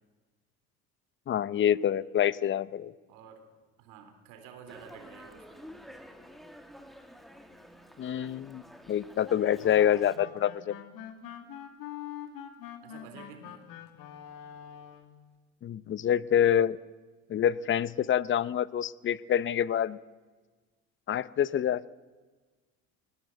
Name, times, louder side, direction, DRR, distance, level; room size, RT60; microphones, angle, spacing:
voice 1, 1.3-2.9 8.0-10.7 15.6-16.8 17.3-20.0 21.1-21.8, left 10 dB, 35° left, 19 dB, 0.7 m, -26 dB
voice 2, 3.1-3.4 3.8-5.6 12.8-13.7, right 7 dB, 80° right, 7 dB, 3.9 m, -50 dB
Dog, 4.7-10.2, equal, ahead, 2.0 m, -50 dB
sound 1, 9.6-15.1, left 10 dB, 65° left, 2.4 m, -44 dB
20.5 x 19.0 x 7.9 m, 1.3 s
supercardioid pair, 105°, 35 cm